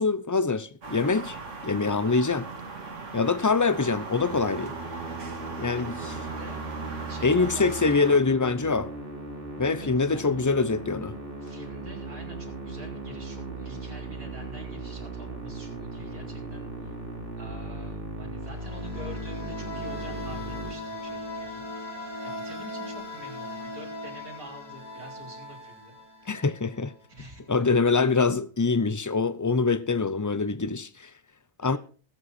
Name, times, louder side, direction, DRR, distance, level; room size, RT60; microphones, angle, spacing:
voice 1, 0.0-1.4 1.6-2.5 3.1-4.7 5.6-6.1 7.2-8.9 9.6-11.2 26.3-26.9 27.5-31.1 31.6-31.8, left 4 dB, 25° left, 0.3 m, -24 dB
sound 1, 0.8-8.2, right 3 dB, 60° right, 2.1 m, -39 dB
Musical instrument, 4.3-21.4, right 2 dB, 40° right, 2.7 m, -38 dB
voice 2, 5.8-6.6 7.1-8.2 9.7-10.4 11.4-17.0 17.4-21.7 22.2-26.0 26.2-26.3 27.1-27.7 31.6-31.8, right 1 dB, 85° right, 4.7 m, -46 dB
sound 2, 18.4-27.0, left 1 dB, 85° left, 3.9 m, -39 dB
19.5 x 8.1 x 4.2 m
omnidirectional pair, 1.5 m